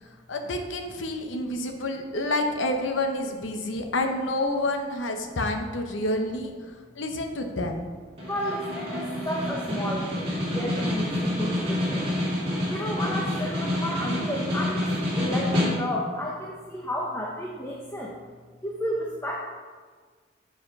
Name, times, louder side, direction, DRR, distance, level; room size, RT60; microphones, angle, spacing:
voice 1, 0.3-7.9, left 1 dB, 90° left, 4 dB, 0.9 m, -29 dB
voice 2, 8.2-12.1 12.7-18.1 18.6-19.4, equal, 15° left, -2 dB, 0.8 m, -32 dB
Snare drum, 8.2-16.1, left 1 dB, 30° right, 2.4 m, -28 dB
7.8 x 5.1 x 5.3 m, 1.5 s
head